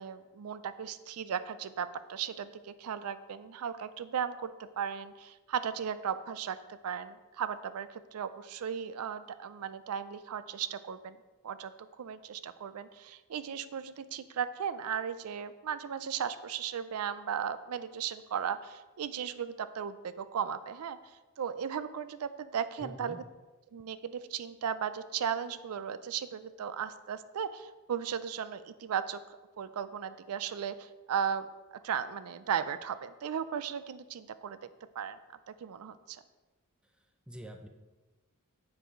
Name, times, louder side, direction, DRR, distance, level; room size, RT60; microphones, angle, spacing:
voice 1, 0.0-11.2 11.4-21.0 21.4-23.2 23.7-29.2 29.6-31.5 31.8-34.6 35.0-35.2 35.5-36.2, right 8 dB, 80° right, 13 dB, 0.4 m, -36 dB
voice 2, 22.8-23.2 37.3-37.7, equal, 5° right, 4 dB, 0.6 m, -45 dB
7.7 x 4.7 x 5.0 m, 1.2 s
head